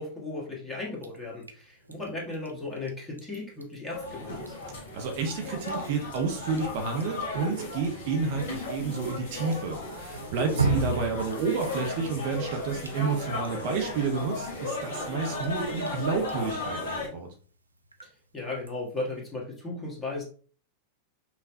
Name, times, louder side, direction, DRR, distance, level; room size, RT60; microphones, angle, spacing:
voice 1, 0.0-4.5 10.4-10.8 18.0-20.2, left 2 dB, 15° left, -3 dB, 1.4 m, -36 dB
Drip, 1.0-19.2, right 3 dB, 80° right, 0.4 m, -39 dB
sound 1, 3.9-17.1, left 2 dB, 60° left, 1.4 m, -36 dB
voice 2, 4.9-17.3, right 4 dB, 50° right, 4 dB, 0.7 m, -30 dB
5.6 x 2.2 x 2.6 m, 0.42 s
figure-of-eight pair, 90°, 0 cm